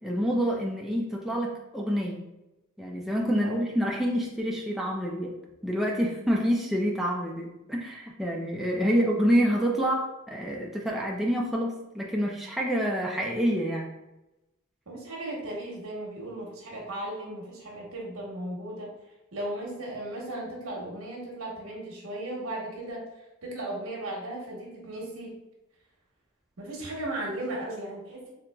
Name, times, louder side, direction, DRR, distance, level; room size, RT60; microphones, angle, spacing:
voice 1, 0.0-2.2 2.8-5.4 5.6-13.9, equal, ahead, -2 dB, 0.3 m, -27 dB
voice 2, 14.9-18.9 19.3-23.0 23.4-25.3 26.6-28.3, right 1 dB, 75° right, -2 dB, 1.0 m, -36 dB
3.8 x 2.8 x 2.2 m, 0.95 s
head